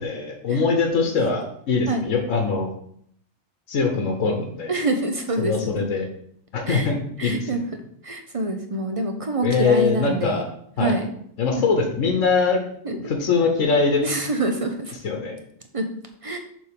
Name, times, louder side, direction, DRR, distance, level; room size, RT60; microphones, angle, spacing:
voice 1, 0.0-2.7 3.7-4.7 5.4-6.1 6.5-7.6 9.4-10.5 10.8-11.0 11.4-12.6 13.0-14.0 15.0-15.4, left 4 dB, 70° left, 2 dB, 1.3 m, -22 dB
voice 2, 4.7-5.7 6.7-6.9 7.2-7.6 8.0-10.4 10.8-11.1 12.8-12.9 14.0-14.9 15.7-15.8 16.2-16.4, right 2 dB, 35° right, 4 dB, 0.6 m, -26 dB
6.9 x 3.6 x 5.0 m, 0.67 s
omnidirectional pair, 1.4 m